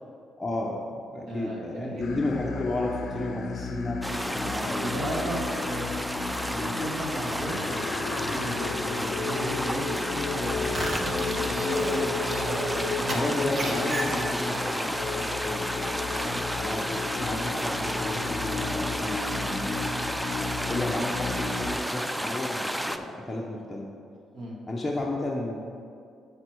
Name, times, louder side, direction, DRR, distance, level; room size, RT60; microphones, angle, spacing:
voice 1, 0.4-0.8 1.1-5.1 13.1-15.9 16.5-20.1 20.7-23.9 24.7-25.6, left 2 dB, 15° left, -3 dB, 0.8 m, -33 dB
voice 2, 1.1-2.2 4.7-12.6 12.9-13.3 13.6-14.6 16.2-16.4 20.7-21.0 24.3-24.6, right 1 dB, 65° right, -3 dB, 2.0 m, -35 dB
sound 1, 2.0-21.8, left 5 dB, 60° left, 0.6 m, -34 dB
sound 2, 4.0-23.0, equal, 5° right, 0.4 m, -31 dB
sound 3, 10.5-14.6, right 1 dB, 25° right, 1.1 m, -33 dB
7.8 x 6.5 x 4.6 m, 2.4 s
cardioid pair, 90°, 0 cm